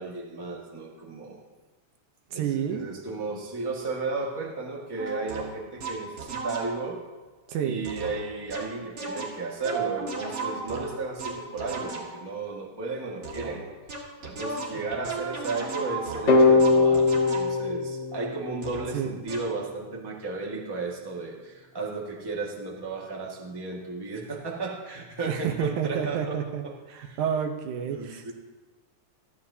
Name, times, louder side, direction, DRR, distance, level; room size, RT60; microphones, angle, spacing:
voice 1, 0.0-1.4 2.3-7.0 7.6-13.7 14.2-26.4 26.6-27.2 27.9-28.3, right 3 dB, 10° right, -2 dB, 1.2 m, -34 dB
voice 2, 2.3-2.9 7.5-7.8 18.9-19.2 25.2-28.3, right 8 dB, 85° right, 5 dB, 2.4 m, -30 dB
sound 1, 5.0-7.0 7.8-12.3 13.2-17.8 18.6-18.9 19.3-19.6, right 4 dB, 55° right, 2.9 m, -35 dB
sound 2, 16.3-19.1, left 3 dB, 45° left, 2.0 m, -21 dB
28.5 x 11.0 x 2.8 m, 1.3 s
omnidirectional pair, 3.4 m